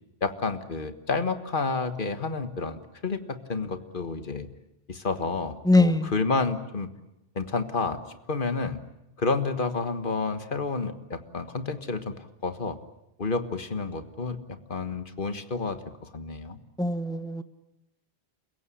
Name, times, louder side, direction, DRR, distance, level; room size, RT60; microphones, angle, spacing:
voice 1, 0.2-4.5 4.9-6.9 7.3-8.8 9.2-12.8 13.2-14.4 14.7-16.6, left 4 dB, 55° left, 9 dB, 1.7 m, -30 dB
voice 2, 5.7-6.1 16.8-17.4, left 2 dB, 5° left, 11 dB, 1.1 m, -22 dB
29.5 x 16.5 x 10.0 m, 0.94 s
omnidirectional pair, 1.0 m